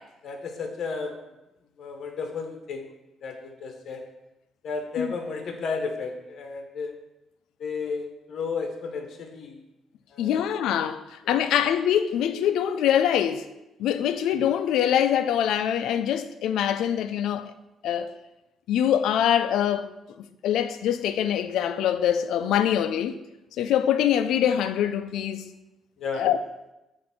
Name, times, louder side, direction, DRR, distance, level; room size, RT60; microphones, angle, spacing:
voice 1, 0.2-1.3 1.8-2.9 3.2-4.1 4.6-6.9 7.6-9.6 10.1-10.4 11.2-11.4 26.0-26.3, left 4 dB, 60° left, 0.9 m, -33 dB
voice 2, 10.2-13.5 13.8-17.5 17.8-18.1 18.7-19.9 20.4-23.2 23.6-25.5 26.1-26.4, left 10 dB, 85° left, 0.4 m, -24 dB
7.5 x 2.6 x 5.9 m
cardioid pair, 90°, 0 cm